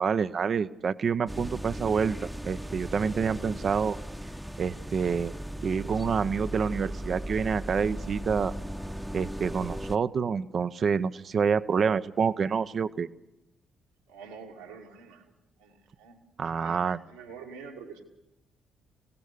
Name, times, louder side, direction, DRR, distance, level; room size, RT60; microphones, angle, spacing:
voice 1, 0.0-4.0 4.6-5.3 5.6-8.5 9.1-13.1 16.4-17.0, right 6 dB, 50° right, 12 dB, 0.8 m, -27 dB
sound 1, 1.3-10.0, right 1 dB, 5° right, 1.0 m, -37 dB
voice 2, 14.1-15.3 15.6-16.2 16.4-18.0, right 5 dB, 80° right, -1 dB, 2.8 m, -46 dB
27.0 x 18.0 x 6.7 m, 0.90 s
figure-of-eight pair, 40°, 0 cm